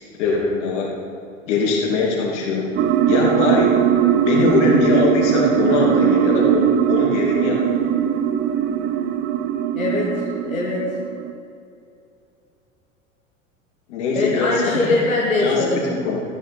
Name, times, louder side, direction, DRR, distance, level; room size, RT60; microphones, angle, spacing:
voice 1, 0.2-0.9 1.5-2.7 3.1-3.8 4.2-7.7 13.9-15.0 15.4-16.2, left 4 dB, 60° left, -2 dB, 2.6 m, -21 dB
sound 1, 2.8-11.3, right 9 dB, 30° right, 0.6 m, -20 dB
voice 2, 9.7-10.1 10.4-10.9 14.1-15.8, left 2 dB, 85° left, -4 dB, 1.4 m, -21 dB
14.0 x 9.8 x 3.7 m, 2.6 s
figure-of-eight pair, 80°, 41 cm